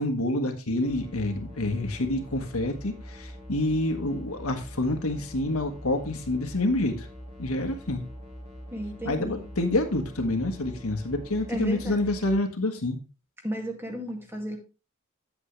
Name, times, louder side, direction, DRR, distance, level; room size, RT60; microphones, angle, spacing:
voice 1, 0.0-7.1 7.4-8.0 9.0-13.0, left 2 dB, 80° left, 5 dB, 1.5 m, -27 dB
sound 1, 0.8-12.4, equal, 35° right, 2.8 m, -43 dB
voice 2, 8.7-9.4 11.5-12.1 13.4-14.6, right 1 dB, 10° right, 2 dB, 2.0 m, -34 dB
9.5 x 8.2 x 3.2 m, 0.31 s
head